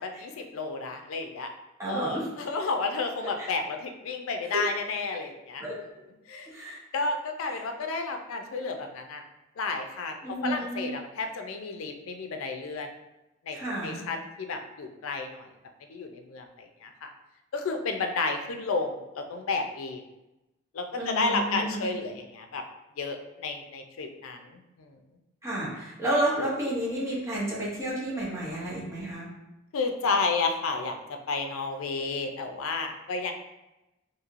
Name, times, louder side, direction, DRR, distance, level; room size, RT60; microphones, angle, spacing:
voice 1, 0.0-1.5 1.9-5.6 6.3-6.5 6.9-9.2 9.6-12.9 13.5-13.6 13.8-15.5 15.9-17.1 17.5-20.0 20.7-22.6 23.0-25.0 29.7-30.9 31.3-33.3, left 3 dB, 80° left, 5 dB, 0.4 m, -31 dB
voice 2, 1.8-2.3 3.2-3.5 4.5-4.6 5.6-5.8 6.5-6.8 7.5-7.6 10.2-10.9 13.5-14.0 21.0-21.8 25.4-29.3, right 1 dB, 15° right, -6 dB, 0.7 m, -31 dB
3.0 x 2.6 x 2.4 m, 0.97 s
head